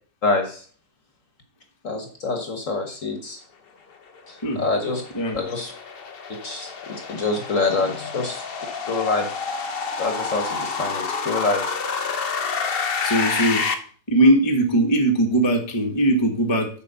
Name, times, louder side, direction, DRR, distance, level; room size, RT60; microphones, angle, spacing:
voice 1, 0.2-0.7 1.8-3.4 4.3-5.0 5.3-5.7 6.4-8.4 8.9-9.3 10.0-11.8, left 3 dB, 45° left, 4 dB, 1.4 m, -26 dB
sound 1, 4.2-13.7, left 5 dB, 60° left, 0.6 m, -29 dB
voice 2, 13.0-13.6 14.1-16.7, right 1 dB, 15° left, 3 dB, 1.1 m, -20 dB
7.0 x 5.2 x 6.9 m, 0.44 s
omnidirectional pair, 2.1 m